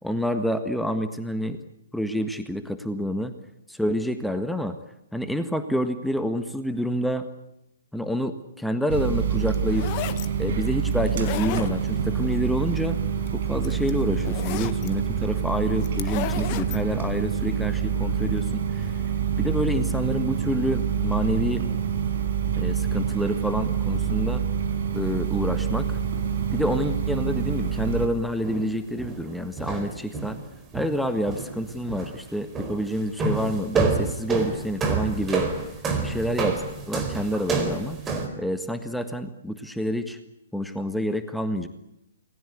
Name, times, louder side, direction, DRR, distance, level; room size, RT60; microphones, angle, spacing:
voice 1, 0.0-1.6 1.9-3.3 3.7-4.7 5.1-7.3 7.9-10.0 10.4-13.0 13.3-19.0 19.4-21.6 22.6-24.4 24.9-26.0 26.5-30.4 30.7-35.5 36.0-38.0 38.3-40.2 40.5-41.7, equal, ahead, 8 dB, 1.5 m, -28 dB
sound 1, 8.9-28.1, right 7 dB, 50° right, 5.5 m, -26 dB
sound 2, 9.5-10.3 11.1-12.1 13.3-13.4 13.6-14.9 15.8-16.8, left 12 dB, 35° left, 1.6 m, -33 dB
sound 3, 26.0-26.1 26.6-26.8 27.3-27.6 27.8-28.0 28.4-30.5 30.7-32.2 32.5-32.9 33.2-38.3, right 4 dB, 15° right, 4.5 m, -28 dB
29.0 x 20.5 x 8.3 m, 0.85 s
figure-of-eight pair, 125°, 0 cm